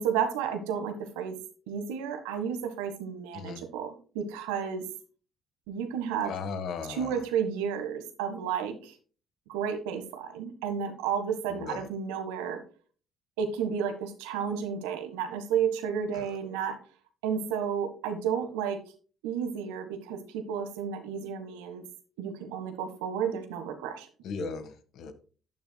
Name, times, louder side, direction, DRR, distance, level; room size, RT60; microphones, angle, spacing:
voice 1, 0.0-1.4 1.7-4.8 5.7-6.3 6.9-8.9 9.5-12.6 13.4-16.8 17.2-18.8 19.2-21.8 22.2-24.1, right 7 dB, 90° right, 8 dB, 1.5 m, -32 dB
voice 2, 6.2-7.2 11.5-11.9 16.2-16.3 24.2-25.1, left 5 dB, 65° left, 9 dB, 1.6 m, -37 dB
11.0 x 9.6 x 2.3 m, 0.39 s
supercardioid pair, 65°, 0 cm